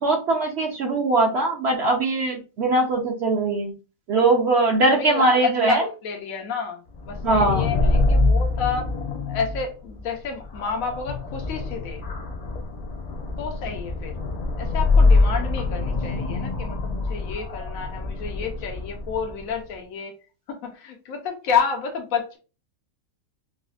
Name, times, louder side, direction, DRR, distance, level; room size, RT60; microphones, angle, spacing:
voice 1, 0.0-3.7 4.1-5.8 7.2-7.7, right 2 dB, 60° right, 1 dB, 0.8 m, -21 dB
voice 2, 4.9-8.9 9.3-12.2 13.4-14.2 14.6-20.1 20.5-22.4, left 6 dB, 85° left, 3 dB, 1.1 m, -30 dB
sound 1, 6.9-19.5, left 3 dB, 60° left, 0.4 m, -24 dB
4.8 x 2.1 x 2.3 m, 0.33 s
omnidirectional pair, 1.4 m